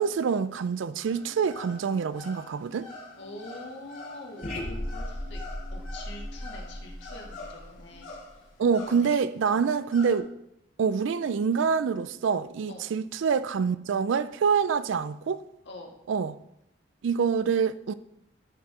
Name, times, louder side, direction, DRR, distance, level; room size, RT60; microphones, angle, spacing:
voice 1, 0.0-2.9 8.6-10.3 10.8-15.4 16.1-16.4 17.0-17.9, right 6 dB, 80° right, 0.4 m, -26 dB
sound 1, 1.0-10.2, left 2 dB, 85° left, 2.3 m, -46 dB
voice 2, 3.2-5.4 5.7-8.1 8.9-9.2 9.4-9.7 12.7-12.9 15.7-16.0, left 2 dB, 65° left, 1.7 m, -44 dB
sound 2, 4.4-8.5, left 1 dB, 35° left, 1.3 m, -37 dB
13.5 x 4.7 x 3.7 m
head